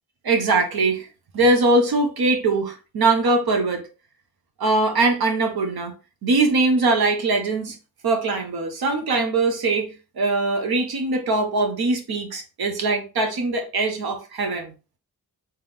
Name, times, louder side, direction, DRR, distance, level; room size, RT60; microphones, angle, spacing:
voice 1, 0.2-1.1 1.3-3.9 4.6-5.9 6.2-7.8 8.0-14.7, right 3 dB, 80° right, 0.9 m, -21 dB
3.5 x 2.9 x 3.4 m
wide cardioid pair, 120°, 36 cm